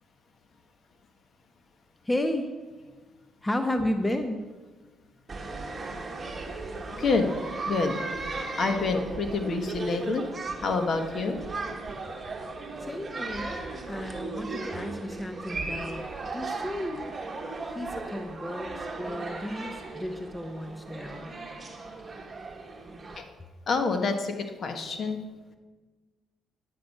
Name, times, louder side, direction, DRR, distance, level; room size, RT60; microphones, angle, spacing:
voice 1, 2.0-2.5 3.4-4.4 12.8-13.6 13.9-16.0 16.3-17.1 17.6-21.3, left 1 dB, 15° left, 6 dB, 0.7 m, -32 dB
sound 1, 5.3-23.2, right 3 dB, 25° right, 1.6 m, -37 dB
voice 2, 7.0-7.3 7.7-8.0 8.6-10.2 10.6-11.4 23.2-23.3 23.7-25.2, left 4 dB, 50° left, 6 dB, 1.2 m, -27 dB
9.8 x 8.4 x 5.4 m, 1.3 s
cardioid pair, 90°, 0 cm